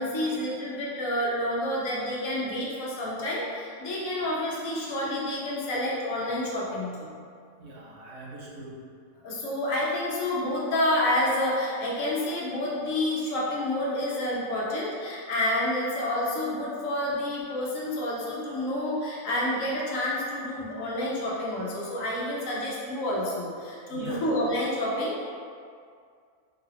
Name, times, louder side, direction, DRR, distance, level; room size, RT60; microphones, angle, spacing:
voice 1, 0.0-7.1 9.2-25.2, left 1 dB, 70° left, -5 dB, 1.2 m, -29 dB
voice 2, 7.6-8.8 23.9-24.2, right 1 dB, 75° right, -5 dB, 1.2 m, -42 dB
3.8 x 2.4 x 3.2 m, 2.2 s
omnidirectional pair, 1.5 m